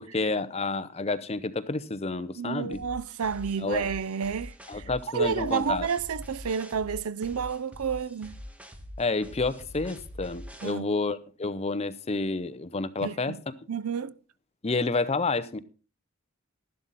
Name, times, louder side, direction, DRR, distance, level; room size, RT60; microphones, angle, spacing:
voice 1, 0.0-2.8 3.6-3.9 4.7-5.9 9.0-13.5 14.6-15.6, left 3 dB, 30° left, 0.7 m, -29 dB
voice 2, 2.4-8.4 10.6-10.9 13.0-13.4 13.7-14.2, right 6 dB, 80° right, 0.5 m, -30 dB
sound 1, 2.7-10.7, left 1 dB, 5° right, 1.4 m, -44 dB
12.5 x 11.5 x 4.1 m
head